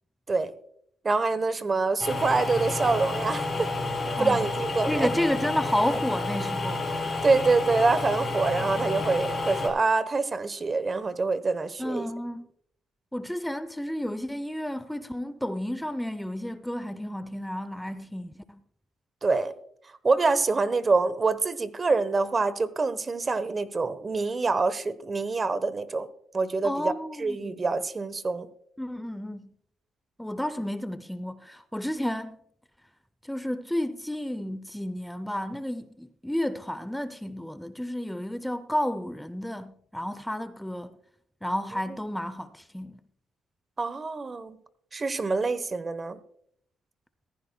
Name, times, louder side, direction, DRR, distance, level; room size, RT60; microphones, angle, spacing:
voice 1, 1.0-3.7 4.1-5.1 7.2-12.1 19.2-19.5 20.0-26.1 26.3-26.9 27.2-28.5 43.8-44.6 44.9-46.2, right 3 dB, 35° right, 0.9 m, -26 dB
sound 1, 2.0-9.7, left 3 dB, 30° left, 3.4 m, -30 dB
voice 2, 4.1-4.5 4.9-6.9 11.8-12.5 13.1-18.6 26.6-27.6 28.8-29.5 30.2-32.4 33.2-41.0 41.4-43.0, left 1 dB, 5° left, 0.5 m, -31 dB
15.0 x 14.5 x 2.2 m
cardioid pair, 90°, 0 cm